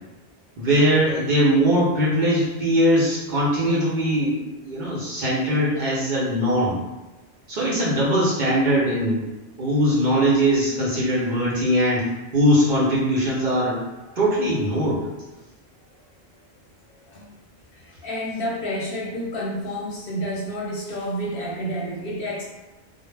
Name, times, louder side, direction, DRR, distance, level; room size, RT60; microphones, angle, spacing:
voice 1, 0.6-6.8 7.5-9.2 9.6-12.1 12.3-13.8 14.2-15.0, equal, 55° right, -7 dB, 0.6 m, -21 dB
voice 2, 16.9-17.3 17.7-22.4, equal, 65° left, -3 dB, 0.7 m, -30 dB
2.1 x 2.0 x 3.1 m, 1.1 s
omnidirectional pair, 1.1 m